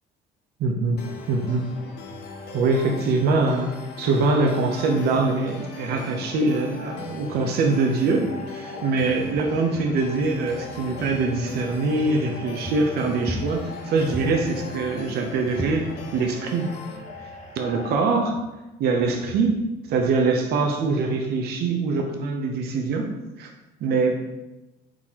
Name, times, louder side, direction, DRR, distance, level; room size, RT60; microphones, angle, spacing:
voice 1, 0.6-1.0 1.3-1.7 2.5-3.7 4.0-16.7 17.6-18.4 18.8-19.6 19.9-23.1 23.4-23.5 23.8-24.2, right 3 dB, 70° right, 3 dB, 0.7 m, -23 dB
sound 1, 1.0-17.0, left 4 dB, 75° left, 0.7 m, -40 dB
sound 2, 1.1-17.9, left 3 dB, 40° left, 1.1 m, -43 dB
sound 3, 8.9-11.8 12.2-12.3 12.6-14.5 15.0-16.7 16.9-18.4 19.0-20.2, equal, 10° right, 0.6 m, -38 dB
4.7 x 3.8 x 2.9 m, 1.0 s
cardioid pair, 110°, 17 cm